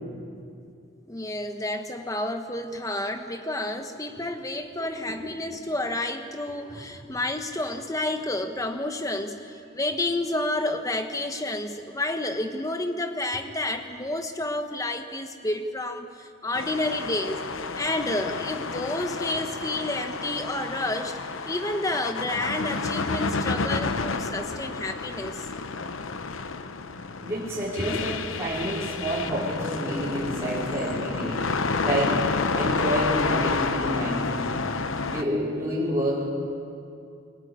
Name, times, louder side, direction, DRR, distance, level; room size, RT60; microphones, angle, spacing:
voice 1, 1.1-17.4 17.8-21.2 21.5-25.5, left 2 dB, 15° left, 6 dB, 1.2 m, -30 dB
voice 2, 5.1-5.6 6.7-6.8 27.2-31.4 31.8-32.2 32.5-34.6 35.1-36.2, equal, 15° right, -8 dB, 4.8 m, -29 dB
sound 1, 16.5-35.2, left 4 dB, 75° left, 0.9 m, -30 dB
23.5 x 15.5 x 9.6 m, 2.5 s
head